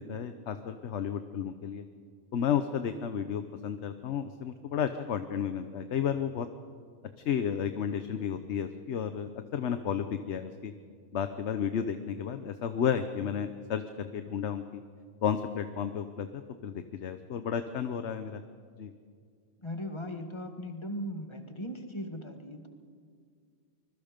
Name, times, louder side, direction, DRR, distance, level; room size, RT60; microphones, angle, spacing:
voice 1, 0.0-1.8 2.3-6.5 7.3-10.7 11.1-14.8 15.2-18.4 18.8-18.9, left 8 dB, 70° left, 9 dB, 1.1 m, -32 dB
voice 2, 19.6-22.7, equal, 25° left, 5 dB, 1.8 m, -38 dB
25.5 x 21.0 x 5.2 m, 2.1 s
omnidirectional pair, 1.2 m